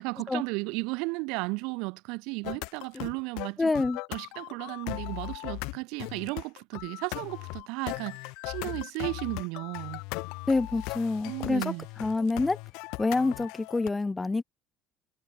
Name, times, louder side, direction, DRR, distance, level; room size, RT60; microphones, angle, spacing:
voice 1, 0.0-3.7 4.1-8.2 8.4-10.0 11.3-11.9, right 28 dB, 80° right, 0.6 m, -34 dB
sound 1, 2.4-13.9, left 28 dB, 80° left, 0.4 m, -38 dB
voice 2, 3.6-4.0 10.5-11.6 12.0-12.6 13.0-14.4, left 3 dB, 15° left, 0.5 m, -27 dB
supercardioid pair, 95°, 0 cm